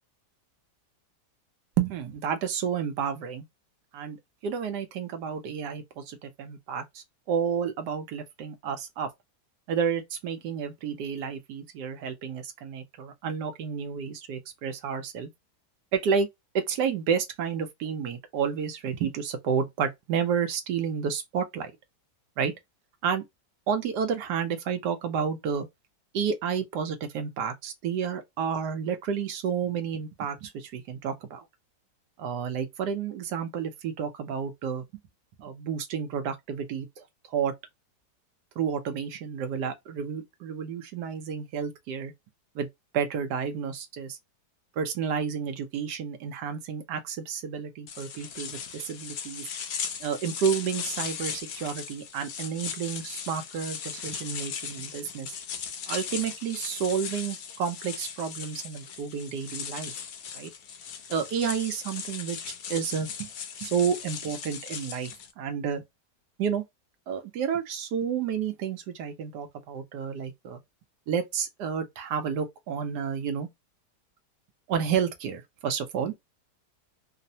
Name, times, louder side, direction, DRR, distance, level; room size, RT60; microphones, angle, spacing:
voice 1, 1.8-3.4 3.9-4.2 4.4-9.1 9.7-15.3 15.9-16.3 16.7-21.7 22.4-22.5 23.0-23.2 23.7-25.7 26.1-31.4 32.2-34.8 35.4-37.5 38.6-42.1 42.5-42.7 42.9-44.2 44.8-49.5 50.0-55.3 55.9-59.9 60.3-60.5 61.1-62.4 62.7-63.3 63.6-65.1 65.4-65.8 66.4-66.6 67.1-70.6 71.1-73.5 74.7-76.2, right 7 dB, 80° right, 1.2 m, -30 dB
sound 1, 47.9-65.3, left 7 dB, 65° left, 0.9 m, -38 dB
3.1 x 2.1 x 2.6 m
omnidirectional pair, 1.8 m